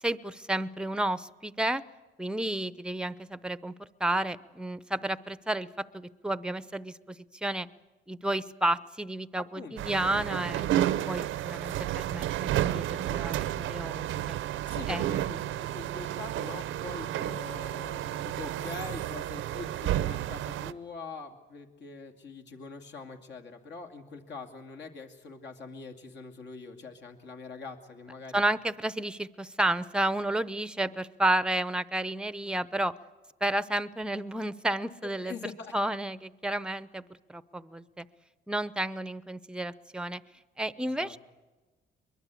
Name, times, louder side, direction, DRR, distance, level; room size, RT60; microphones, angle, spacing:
voice 1, 0.0-1.8 2.2-5.7 5.9-7.2 7.4-7.7 8.1-14.3 14.9-15.1 28.3-32.9 33.4-35.3 35.7-38.1 38.5-40.2 40.6-41.2, right 1 dB, 5° right, 17 dB, 0.7 m, -31 dB
voice 2, 9.4-9.7 14.7-28.4 35.0-35.7 41.0-41.1, left 4 dB, 60° left, 5 dB, 2.6 m, -43 dB
sound 1, 9.8-20.7, right 13 dB, 85° right, 0.7 m, -31 dB
23.0 x 21.5 x 8.4 m, 1.2 s
cardioid pair, 90°, 20 cm